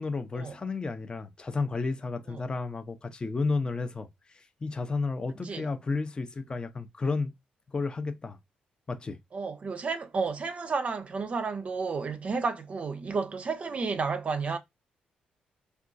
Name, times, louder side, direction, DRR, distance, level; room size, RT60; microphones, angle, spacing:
voice 1, 0.0-7.3 7.7-8.4 8.9-9.2, left 3 dB, 30° left, 0.5 m, -32 dB
voice 2, 9.3-14.6, right 4 dB, 45° right, 0.5 m, -31 dB
3.6 x 2.3 x 2.5 m
cardioid pair, 65°, 3 cm